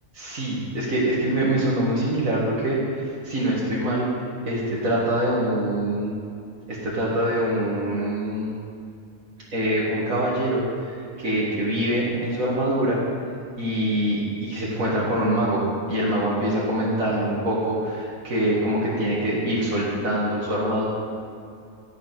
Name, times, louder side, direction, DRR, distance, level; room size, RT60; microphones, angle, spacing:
voice 1, 0.1-4.1 4.4-6.1 6.7-8.5 9.5-10.6 11.2-13.0 13.6-20.8, right 1 dB, 75° right, -6 dB, 2.6 m, -24 dB
16.5 x 8.0 x 4.7 m, 2.4 s
omnidirectional pair, 1.4 m